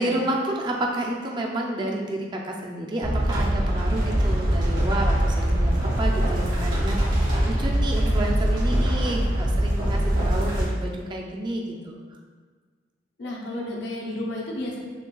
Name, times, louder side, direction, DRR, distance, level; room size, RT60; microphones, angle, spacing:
voice 1, 0.0-12.0, right 1 dB, 25° right, 0 dB, 0.3 m, -30 dB
sound 1, 3.0-10.6, equal, 85° right, 1.5 m, -23 dB
voice 2, 9.8-10.1 13.2-14.8, left 1 dB, 65° left, -2 dB, 0.6 m, -32 dB
6.4 x 2.2 x 2.3 m, 1.5 s
head